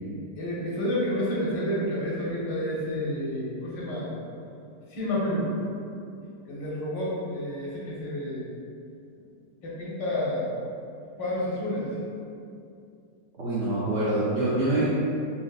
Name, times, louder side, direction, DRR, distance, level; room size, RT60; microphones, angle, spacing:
voice 1, 0.4-4.1 4.9-5.5 6.5-8.5 9.6-10.5 11.2-11.9, left 1 dB, 85° left, -6 dB, 1.5 m, -29 dB
voice 2, 13.4-14.9, right 2 dB, 80° right, -9 dB, 0.6 m, -25 dB
4.3 x 2.3 x 2.4 m, 2.5 s
omnidirectional pair, 1.9 m